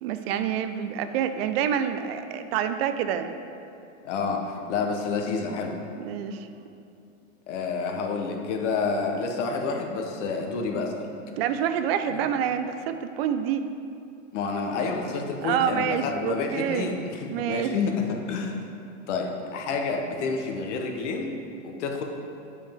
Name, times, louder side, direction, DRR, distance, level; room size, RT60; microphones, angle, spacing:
voice 1, 0.0-3.4 6.0-6.5 11.3-13.6 15.4-16.9 17.3-17.7, right 9 dB, 50° right, 9 dB, 0.5 m, -27 dB
voice 2, 4.0-5.8 7.5-11.1 12.1-12.2 14.3-18.6 19.1-21.3 21.6-22.0, left 4 dB, 65° left, 3 dB, 1.1 m, -29 dB
8.3 x 5.5 x 3.5 m, 2.6 s
hypercardioid pair, 130°, 38 cm